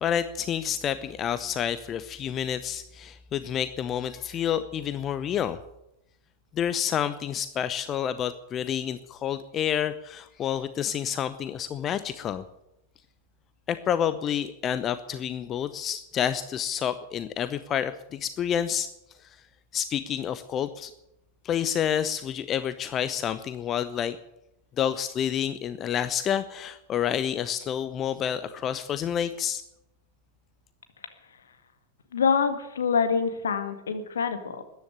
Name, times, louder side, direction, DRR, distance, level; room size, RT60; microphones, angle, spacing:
voice 1, 0.0-5.6 6.5-12.4 13.7-18.9 19.2-19.4 19.7-20.9 21.4-24.2 24.8-29.6, left 9 dB, 30° left, 13 dB, 0.8 m, -29 dB
voice 2, 32.1-34.6, left 6 dB, 65° left, 8 dB, 1.9 m, -25 dB
14.0 x 10.5 x 9.7 m, 0.85 s
figure-of-eight pair, 90°, 0 cm